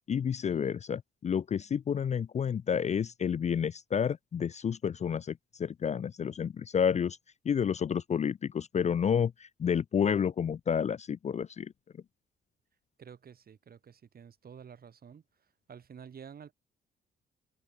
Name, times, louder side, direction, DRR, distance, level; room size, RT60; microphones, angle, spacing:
voice 1, 0.1-7.2 7.5-11.7, left 7 dB, 35° left, 0.5 m, -30 dB
voice 2, 13.0-16.5, right 7 dB, 50° right, 3.6 m, -50 dB
cardioid pair, 90°, 20 cm